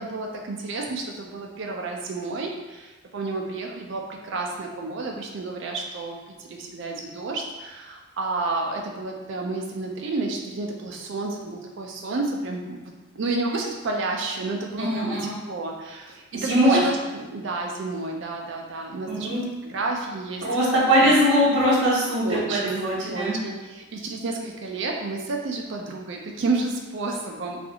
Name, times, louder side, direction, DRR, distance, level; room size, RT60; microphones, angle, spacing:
voice 1, 0.0-20.4 21.0-21.2 22.2-22.8 23.1-27.6, right 3 dB, 55° right, 1 dB, 0.4 m, -31 dB
voice 2, 14.8-15.3 16.3-16.9 19.1-19.4 20.4-23.4, equal, 85° right, -11 dB, 0.7 m, -21 dB
2.4 x 2.4 x 2.7 m, 1.2 s
head